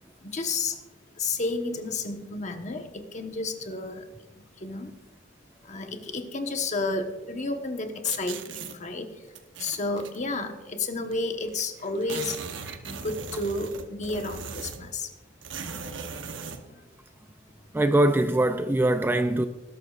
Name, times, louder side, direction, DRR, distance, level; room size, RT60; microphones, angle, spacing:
voice 1, 0.2-0.8 1.2-4.9 5.6-9.3 9.6-12.4 12.9-15.1, left 3 dB, 35° left, 1.1 m, -31 dB
sound 1, 8.0-8.8 9.3-10.2 11.1-11.2 11.4-11.5 11.8-14.9 15.4-16.6, right 5 dB, 65° right, 0.9 m, -38 dB
voice 2, 17.7-19.5, right 1 dB, 10° right, 0.3 m, -22 dB
20.0 x 11.5 x 2.4 m
head